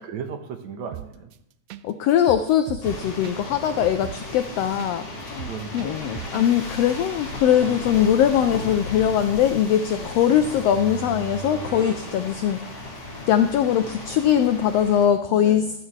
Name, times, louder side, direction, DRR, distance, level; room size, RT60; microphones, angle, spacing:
voice 1, 0.0-1.3 5.5-6.2 9.9-10.1 12.0-12.2 15.3-15.7, right 6 dB, 70° right, 5 dB, 2.3 m, -36 dB
sound 1, 0.9-1.4 1.7-1.8 2.1-4.9 5.2-6.5 6.7-6.8, right 14 dB, 90° right, 1.4 m, -37 dB
voice 2, 1.8-12.6 13.3-15.7, left 9 dB, 85° left, 9 dB, 1.4 m, -21 dB
sound 2, 2.8-15.1, left 2 dB, 60° left, 6.2 m, -36 dB
sound 3, 10.0-13.1, right 5 dB, 15° right, 0.6 m, -39 dB
14.5 x 12.5 x 3.2 m, 0.81 s
omnidirectional pair, 3.5 m